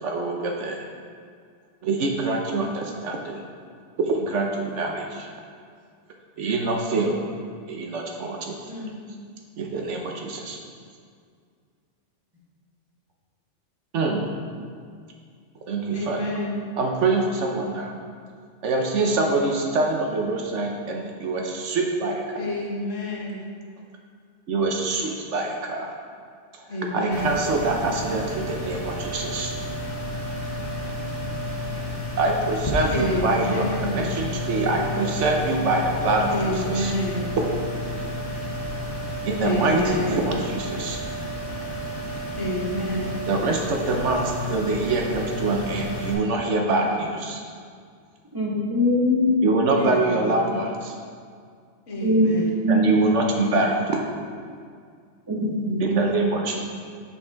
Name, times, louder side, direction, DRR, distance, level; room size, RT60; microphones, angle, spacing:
voice 1, 0.0-0.9 1.8-3.4 4.0-5.3 6.4-7.3 7.7-8.7 9.6-10.6 13.9-14.3 15.7-16.3 16.8-17.9 18.6-22.4 24.5-25.9 26.9-29.5 32.2-36.9 39.2-41.0 43.3-47.4 49.4-50.9 52.7-54.0 55.8-56.6, right 3 dB, 70° right, 1 dB, 1.1 m, -25 dB
voice 2, 15.9-16.6 22.4-23.4 26.7-27.3 32.9-34.2 36.3-37.3 39.4-40.2 42.4-43.2 49.7-50.4 51.9-52.6, left 1 dB, 75° left, -3 dB, 1.6 m, -28 dB
sound 1, 27.1-46.1, left 1 dB, 30° left, 1.0 m, -31 dB
voice 3, 48.3-49.3 52.0-52.3 52.6-53.0 55.3-56.0, left 1 dB, 20° right, -7 dB, 1.5 m, -22 dB
7.2 x 5.6 x 3.5 m, 2.1 s
omnidirectional pair, 1.3 m